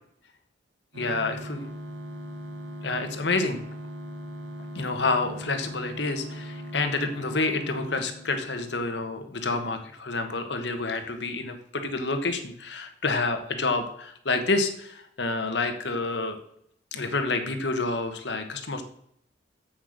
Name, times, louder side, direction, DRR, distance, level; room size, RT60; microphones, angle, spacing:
sound 1, 0.9-9.0, equal, 85° right, 1.6 m, -39 dB
voice 1, 1.0-1.7 2.8-3.6 4.7-16.4 16.9-18.8, left 3 dB, 65° left, 7 dB, 1.4 m, -28 dB
7.9 x 7.6 x 6.6 m, 0.70 s
head